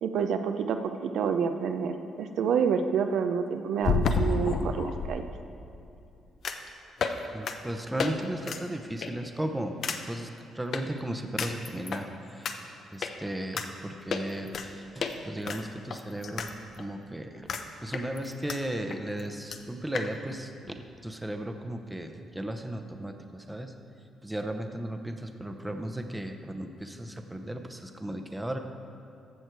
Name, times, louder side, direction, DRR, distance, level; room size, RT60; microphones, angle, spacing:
voice 1, 0.0-5.2, right 6 dB, 75° right, 7 dB, 0.5 m, -28 dB
sound 1, 1.3-1.4 3.8-5.1 6.4-6.7 7.0-7.2 7.5-7.6 8.0-8.1 8.4-8.6 9.0-9.3 9.8-10.0 10.7-10.8 11.4-12.0 12.4-12.5 13.0-13.1 13.6-13.7 14.1-14.7 15.0-15.1 15.5-16.5 16.8-16.9 17.5-17.6 17.9-18.6 18.9-19.0 19.2-19.3 19.5-19.6 19.9-20.1, left 5 dB, 60° left, 0.7 m, -30 dB
voice 2, 7.3-9.8 10.1-12.6 12.9-16.5 16.8-17.5 17.8-23.7 24.2-28.6, right 1 dB, 10° right, 6 dB, 0.8 m, -35 dB
14.5 x 6.2 x 4.7 m, 2.7 s
cardioid pair, 90°, 0 cm